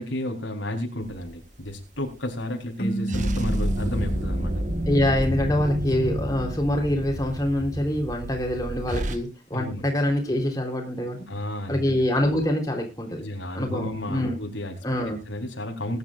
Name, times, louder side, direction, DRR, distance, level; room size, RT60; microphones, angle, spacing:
voice 1, 0.0-4.5 9.5-9.9 11.3-12.0 13.2-16.0, left 1 dB, 85° left, 2 dB, 4.1 m, -32 dB
sound 1, 1.1-1.7 3.1-9.2, equal, 40° right, 1.6 m, -29 dB
sound 2, 2.8-6.0, right 2 dB, 50° left, 1.7 m, -33 dB
voice 2, 4.9-11.2 11.7-13.2 13.5-14.4 14.8-15.2, left 1 dB, 20° left, 1 dB, 3.9 m, -25 dB
21.0 x 11.0 x 2.6 m, 0.28 s
head